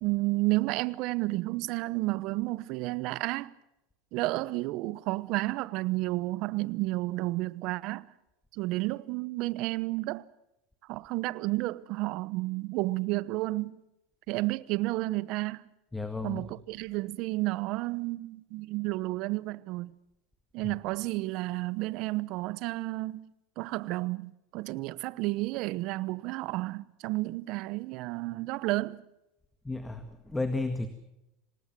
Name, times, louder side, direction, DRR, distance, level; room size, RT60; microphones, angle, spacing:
voice 1, 0.0-3.5 4.1-8.1 8.5-10.3 10.9-13.8 14.3-15.6 16.2-19.9 20.5-23.3 23.6-29.0, right 20 dB, 60° right, 0.9 m, -31 dB
voice 2, 15.9-16.5 20.6-20.7 29.6-30.9, left 3 dB, 10° left, 1.8 m, -33 dB
26.5 x 19.0 x 6.1 m
supercardioid pair, 115°, 0 cm